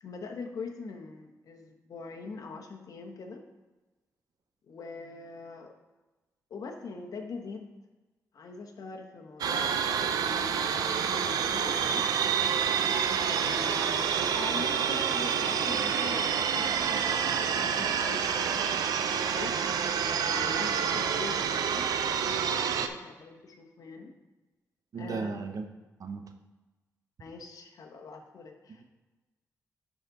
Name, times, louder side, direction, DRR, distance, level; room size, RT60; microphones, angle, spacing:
voice 1, 0.0-3.4 4.7-5.7 6.5-7.7 8.3-12.1 13.1-19.6 20.3-24.2 25.0-25.6 27.2-28.8, left 4 dB, 70° left, 3 dB, 1.1 m, -43 dB
sound 1, 9.4-22.9, right 7 dB, 85° right, 0.5 m, -28 dB
voice 2, 24.9-25.6 26.0-26.2, right 4 dB, 65° right, 6 dB, 0.9 m, -35 dB
11.0 x 4.1 x 4.0 m, 1.2 s
cardioid pair, 70°, 6 cm